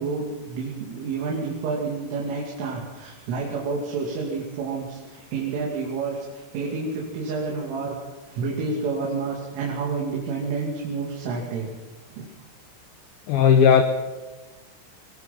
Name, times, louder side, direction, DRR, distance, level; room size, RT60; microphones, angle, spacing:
voice 1, 0.0-8.0 8.3-11.7 12.1-12.3, right 4 dB, 85° right, -3 dB, 5.3 m, -29 dB
voice 2, 13.3-13.8, left 7 dB, 80° left, 8 dB, 2.2 m, -15 dB
24.0 x 19.5 x 5.9 m, 1.2 s
omnidirectional pair, 5.5 m